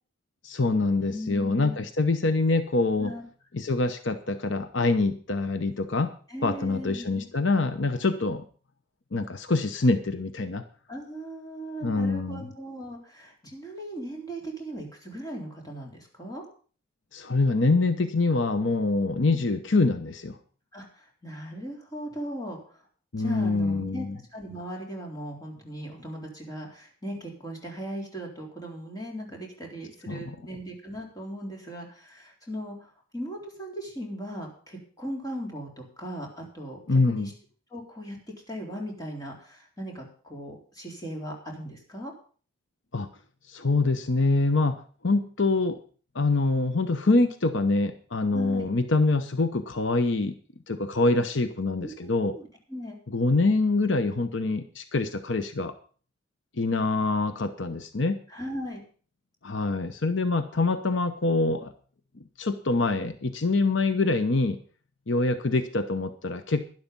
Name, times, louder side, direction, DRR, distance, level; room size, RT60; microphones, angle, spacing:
voice 1, 0.4-3.1 3.5-6.1 6.4-8.4 9.1-10.6 11.8-12.5 17.1-20.4 23.1-24.2 30.1-30.4 36.9-37.3 42.9-43.1 43.5-45.8 46.1-50.3 50.7-52.4 53.1-55.7 56.6-58.2 59.4-61.7 62.4-64.6 65.1-66.6, left 3 dB, 80° left, 10 dB, 1.0 m, -25 dB
voice 2, 1.0-1.8 3.0-3.2 6.3-7.3 10.9-16.4 19.3-19.4 20.7-22.8 23.2-24.1 24.3-37.3 37.7-38.2 38.5-42.1 48.3-48.7 51.8-52.4 52.7-53.0 58.3-58.8, equal, 20° left, -1 dB, 3.9 m, -38 dB
12.0 x 11.5 x 5.4 m, 0.42 s
head